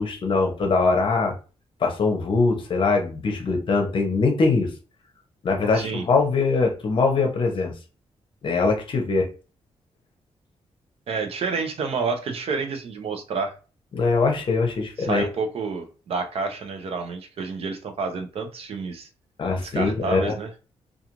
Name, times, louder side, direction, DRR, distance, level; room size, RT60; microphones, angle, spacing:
voice 1, 0.0-1.3 1.8-4.7 5.4-7.7 8.4-9.3 13.9-15.3 19.4-20.3, left 4 dB, 50° left, 3 dB, 0.7 m, -22 dB
voice 2, 5.7-6.1 11.1-13.5 15.0-19.1 19.7-20.5, right 4 dB, 60° right, 5 dB, 0.6 m, -29 dB
2.5 x 2.4 x 2.9 m, 0.34 s
wide cardioid pair, 145°, 11 cm